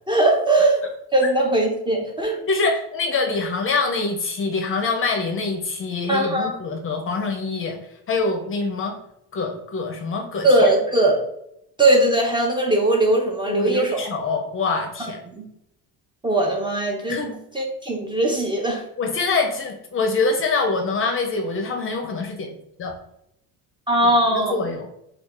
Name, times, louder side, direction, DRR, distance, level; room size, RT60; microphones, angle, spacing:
voice 1, 0.1-0.8 1.1-2.5 6.1-6.5 10.4-11.2 11.8-14.0 15.0-15.1 15.4-15.5 16.2-17.2 17.5-18.8 23.9-24.6, right 1 dB, 15° right, 0 dB, 0.5 m, -20 dB
voice 2, 2.5-7.8 8.1-9.0 9.3-10.7 13.5-15.2 17.1-17.4 19.0-22.5 22.8-22.9 24.0-24.9, left 3 dB, 35° left, 4 dB, 0.5 m, -25 dB
3.1 x 2.3 x 3.6 m, 0.77 s
cardioid pair, 130°, 36 cm